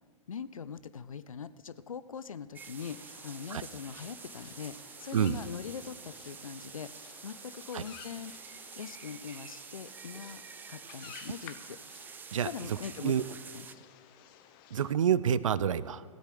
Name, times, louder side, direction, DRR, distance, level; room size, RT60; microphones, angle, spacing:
voice 1, 0.3-6.9 7.2-8.3 8.8-10.4 10.7-11.8 12.4-13.8, left 7 dB, 80° left, 15 dB, 0.6 m, -42 dB
sound 1, 2.5-13.8, right 7 dB, 10° right, 0.3 m, -48 dB
sound 2, 2.8-14.9, left 10 dB, 40° left, 0.9 m, -54 dB
voice 2, 12.3-12.8 13.0-13.2 14.7-16.0, right 8 dB, 70° right, 18 dB, 0.5 m, -28 dB
16.5 x 8.1 x 6.9 m, 2.2 s
figure-of-eight pair, 105°, 17 cm